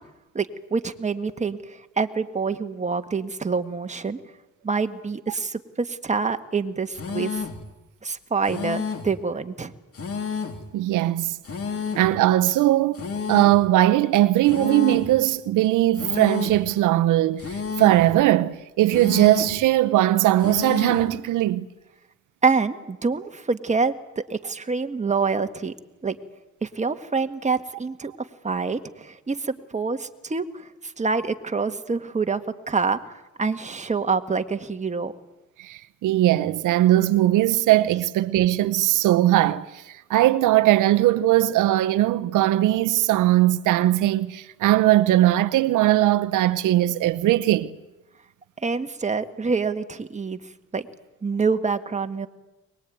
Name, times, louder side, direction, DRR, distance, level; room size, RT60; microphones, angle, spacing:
voice 1, 0.3-4.2 4.6-7.4 8.0-9.7 22.4-25.7 26.0-26.2 26.6-28.1 28.4-35.1 48.6-50.4 50.7-50.9 51.2-52.3, right 4 dB, 25° right, 1.7 m, -26 dB
sound 1, 6.9-7.6 8.4-9.2 9.9-10.7 11.4-12.1 12.9-13.7 14.4-15.2 15.9-16.7 17.4-18.1 18.9-19.6 20.4-21.1, left 5 dB, 50° left, 3.1 m, -31 dB
voice 2, 10.7-11.4 12.0-21.6 35.6-39.8 40.1-47.7, right 14 dB, 85° right, 0.9 m, -20 dB
23.0 x 20.5 x 9.3 m
cardioid pair, 90°, 30 cm